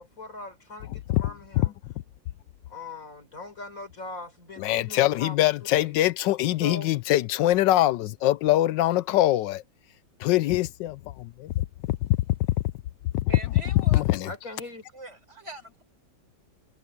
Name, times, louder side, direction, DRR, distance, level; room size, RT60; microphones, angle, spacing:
voice 1, 0.0-1.7 2.7-5.4 5.7-6.0 6.6-6.9 14.3-14.8, left 3 dB, 50° left, 4.6 m, -40 dB
voice 2, 4.6-9.6 10.2-12.0 13.1-13.3 13.9-14.3, left 15 dB, 90° left, 1.3 m, -23 dB
voice 3, 13.3-14.1 14.9-15.8, right 1 dB, 40° right, 5.6 m, -42 dB
omnidirectional pair, 1.9 m